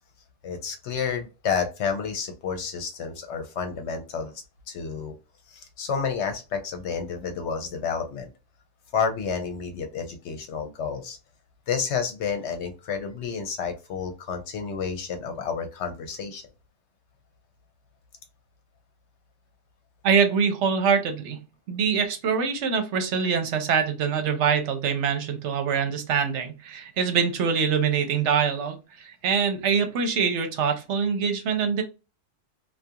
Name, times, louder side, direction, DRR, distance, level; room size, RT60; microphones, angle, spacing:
voice 1, 0.4-4.3 4.7-5.1 5.5-8.3 8.9-11.2 11.7-16.4, left 6 dB, 70° left, 0.8 m, -30 dB
voice 2, 20.0-21.4 21.7-31.8, right 6 dB, 75° right, 0.9 m, -24 dB
2.3 x 2.2 x 2.7 m
omnidirectional pair, 1.2 m